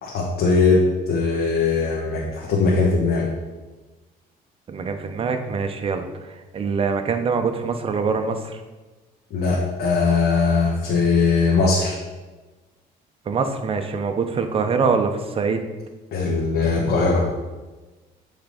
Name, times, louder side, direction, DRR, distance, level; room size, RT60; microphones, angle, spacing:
voice 1, 0.0-3.3 9.3-12.0 16.1-17.3, left 4 dB, 70° left, -4 dB, 1.3 m, -20 dB
voice 2, 4.7-6.0 6.5-8.6 13.3-15.6, right 5 dB, 35° right, 6 dB, 0.7 m, -24 dB
7.9 x 3.5 x 5.1 m, 1.2 s
cardioid pair, 110°, 17 cm